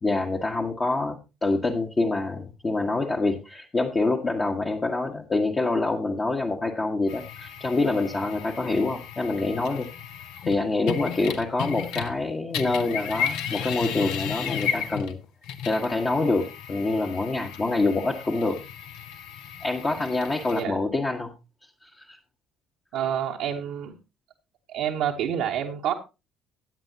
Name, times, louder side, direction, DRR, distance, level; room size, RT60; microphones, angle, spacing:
voice 1, 0.0-9.9 10.4-15.2 15.6-18.6 19.6-21.3 21.8-22.2, left 3 dB, 30° left, 0 dB, 1.3 m, -26 dB
sound 1, 7.1-12.2 12.5-20.6, left 8 dB, 60° left, 0.8 m, -34 dB
voice 2, 22.9-23.9 24.7-25.9, right 9 dB, 60° right, -1 dB, 0.9 m, -28 dB
15.0 x 9.0 x 2.8 m, 0.27 s
figure-of-eight pair, 50°, 0 cm